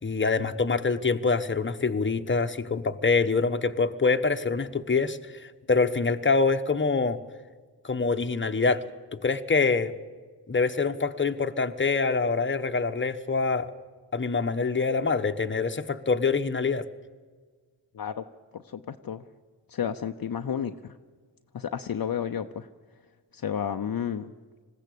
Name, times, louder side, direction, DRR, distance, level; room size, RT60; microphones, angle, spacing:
voice 1, 0.0-7.2 7.8-8.8 9.1-9.9 10.5-13.7 14.1-16.8, left 4 dB, 25° left, 7 dB, 1.1 m, -25 dB
voice 2, 18.5-19.2 19.7-20.9 21.5-22.7 23.3-24.3, left 8 dB, 55° left, 7 dB, 0.7 m, -31 dB
20.5 x 15.0 x 8.5 m, 1.5 s
cardioid pair, 60°, 42 cm